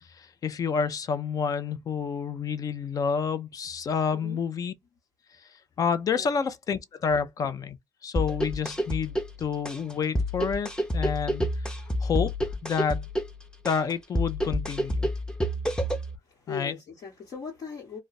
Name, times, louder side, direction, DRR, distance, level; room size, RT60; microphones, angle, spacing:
voice 1, 0.2-4.7 5.8-7.8 8.0-11.5 12.0-12.3 12.6-13.1 13.6-15.1 16.5-16.7, left 6 dB, 50° left, 0.5 m, -29 dB
sound 1, 8.2-16.2, equal, 10° left, 0.6 m, -29 dB
voice 2, 16.2-18.0, left 5 dB, 70° left, 1.2 m, -39 dB
2.4 x 2.1 x 3.9 m
cardioid pair, 90°, 8 cm